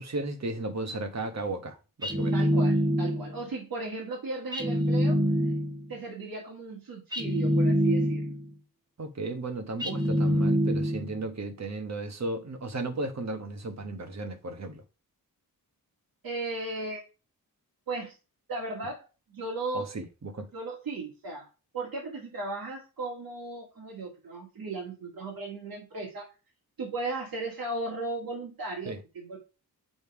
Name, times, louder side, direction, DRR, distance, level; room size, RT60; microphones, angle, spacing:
voice 1, 0.0-2.3 9.0-14.8 19.7-20.5 28.8-29.0, right 2 dB, 45° right, 1.3 m, -35 dB
sound 1, 2.0-3.4 4.5-5.9 7.1-8.5 9.8-11.2, equal, 10° right, 1.2 m, -25 dB
voice 2, 2.3-5.2 5.9-8.4 16.2-17.0 17.9-18.1 18.5-19.9 20.5-21.5 21.7-26.3 26.8-29.4, right 2 dB, 70° right, 2.2 m, -36 dB
7.8 x 3.5 x 4.8 m
wide cardioid pair, 145°, 37 cm